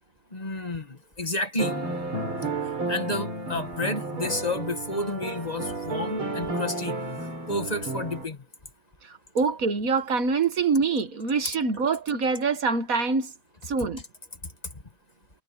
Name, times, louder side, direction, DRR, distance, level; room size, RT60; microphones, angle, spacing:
voice 1, 0.3-1.7 2.9-6.9 7.5-8.4, left 2 dB, 20° left, 1.6 m, -30 dB
sound 1, 1.6-8.3, right 2 dB, 70° right, 6.0 m, -32 dB
voice 2, 9.3-13.3 13.7-14.0, right 4 dB, 45° right, 1.7 m, -25 dB
omnidirectional pair, 2.3 m